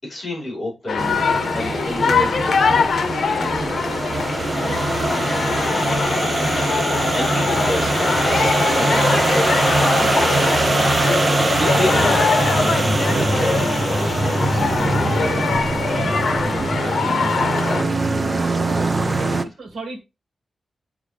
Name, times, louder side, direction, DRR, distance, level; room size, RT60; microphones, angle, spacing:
voice 1, 0.0-4.0 4.3-5.3 5.6-8.1 8.5-15.4 15.8-19.4, left 1 dB, 20° left, 5.3 m, -32 dB
sound 1, 0.9-17.8, left 5 dB, 75° left, 0.8 m, -22 dB
sound 2, 1.0-19.4, right 2 dB, 30° right, 0.8 m, -22 dB
voice 2, 19.0-20.0, right 3 dB, 80° right, 2.0 m, -36 dB
11.0 x 3.7 x 3.4 m
wide cardioid pair, 155°, 0 cm